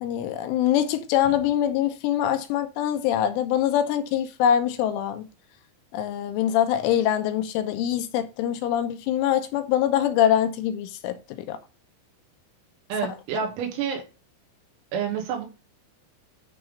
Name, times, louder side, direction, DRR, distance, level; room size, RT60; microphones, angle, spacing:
voice 1, 0.0-5.3 5.9-11.6, left 10 dB, 80° left, 3.2 m, -24 dB
voice 2, 12.9-14.0 14.9-15.5, right 7 dB, 85° right, 4.5 m, -28 dB
10.5 x 3.6 x 5.0 m
omnidirectional pair, 5.9 m